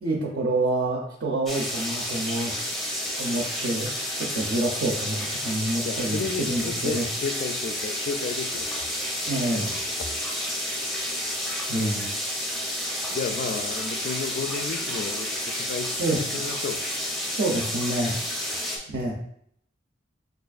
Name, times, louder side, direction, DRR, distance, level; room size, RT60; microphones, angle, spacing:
voice 1, 0.0-2.6 2.9-7.1 9.3-9.7 11.7-12.1 16.0-16.2 17.4-18.2 18.9-19.1, right 2 dB, 55° right, -3 dB, 0.6 m, -27 dB
sound 1, 1.5-18.8, equal, ahead, 0.6 m, -30 dB
voice 2, 5.9-8.7 9.5-10.1 11.7-12.1 13.1-16.9, left 5 dB, 45° left, 8 dB, 0.3 m, -33 dB
4.9 x 2.4 x 2.4 m, 0.69 s
head